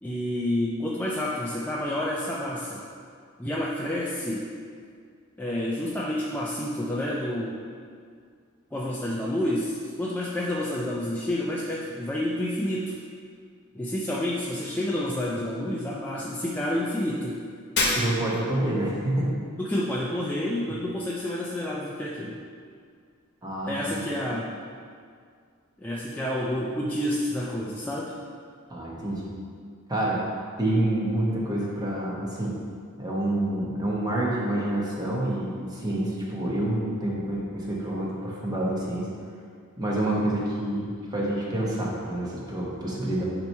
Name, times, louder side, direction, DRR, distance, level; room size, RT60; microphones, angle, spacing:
voice 1, 0.0-2.9 3.4-4.5 5.4-7.7 8.7-13.0 13.7-17.4 19.6-22.4 23.7-24.5 25.8-28.2, left 1 dB, 10° left, -5 dB, 0.4 m, -29 dB
Shatter, 17.8-18.6, left 2 dB, 50° left, 1.0 m, -26 dB
voice 2, 17.9-19.4 23.4-24.0 28.7-29.3 29.9-30.2 30.6-32.6 33.0-39.1 39.8-43.2, right 1 dB, 20° right, -5 dB, 1.0 m, -27 dB
8.5 x 3.0 x 4.5 m, 2.1 s
head